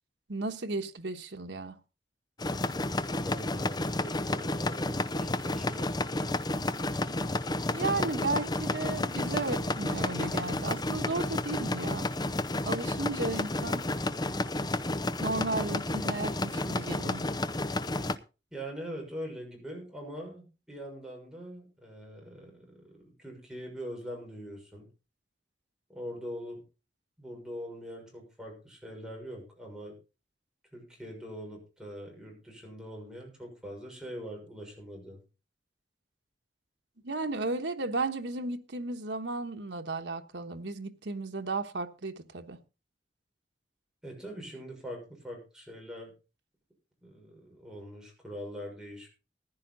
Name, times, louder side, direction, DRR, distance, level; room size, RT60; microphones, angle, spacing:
voice 1, 0.3-1.8 7.7-12.1 12.6-13.9 15.2-17.3 37.0-42.6, right 3 dB, 90° right, 1.3 m, -34 dB
sound 1, 2.4-18.2, left 2 dB, 25° left, 0.6 m, -31 dB
voice 2, 3.1-5.9 18.5-24.9 25.9-26.6 27.2-30.0 30.7-35.2 44.0-46.1 47.0-49.1, equal, 5° right, 6.4 m, -43 dB
15.0 x 10.5 x 4.0 m
head